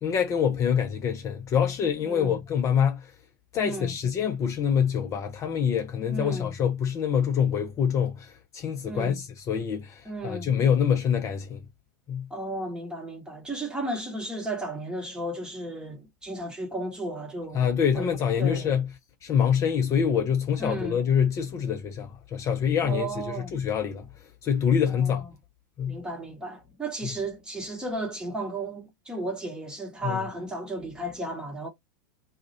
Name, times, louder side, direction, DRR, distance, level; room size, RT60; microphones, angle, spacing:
voice 1, 0.0-3.1 3.5-11.6 12.1-12.3 17.5-18.9 19.2-24.1 24.4-25.2 25.8-26.0 30.0-30.2, left 8 dB, 30° left, 0.4 m, -25 dB
voice 2, 2.0-2.4 3.6-3.9 6.1-6.5 8.8-9.2 10.0-10.5 12.3-17.6 17.9-18.1 18.4-18.7 20.6-21.0 22.8-23.6 24.9-25.3 25.9-31.7, right 1 dB, 10° right, 1.0 m, -34 dB
2.3 x 2.1 x 2.6 m
hypercardioid pair, 95°, 10 cm